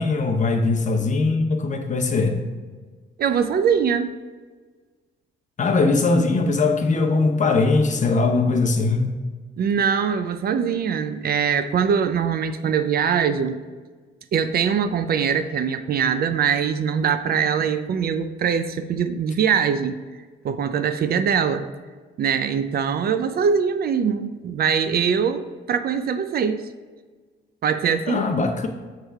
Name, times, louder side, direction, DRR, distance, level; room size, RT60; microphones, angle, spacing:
voice 1, 0.0-2.4 5.6-9.1 28.1-28.7, left 3 dB, 40° left, 4 dB, 0.8 m, -20 dB
voice 2, 3.2-4.1 9.6-13.6 14.3-20.0 20.4-21.7 22.2-26.6 27.6-28.2, right 7 dB, 50° right, 10 dB, 0.4 m, -22 dB
6.4 x 3.3 x 4.6 m, 1.4 s
cardioid pair, 90°, 20 cm